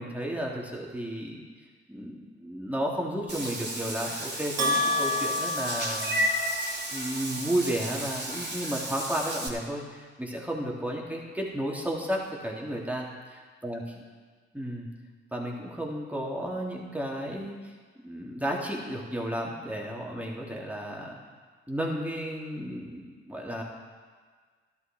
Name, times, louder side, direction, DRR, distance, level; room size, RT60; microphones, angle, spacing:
voice 1, 0.0-1.4 1.9-6.2 6.9-13.8 14.5-14.9 15.3-21.1 21.7-23.6, equal, 5° right, -2 dB, 3.3 m, -33 dB
Meow / Water / Bathtub (filling or washing), 3.3-9.5, right 1 dB, 35° right, 3.2 m, -33 dB
Bell, 4.6-6.7, left 2 dB, 60° right, 2.6 m, -29 dB
13.0 x 11.0 x 4.6 m, 1.5 s
hypercardioid pair, 40°, 30 cm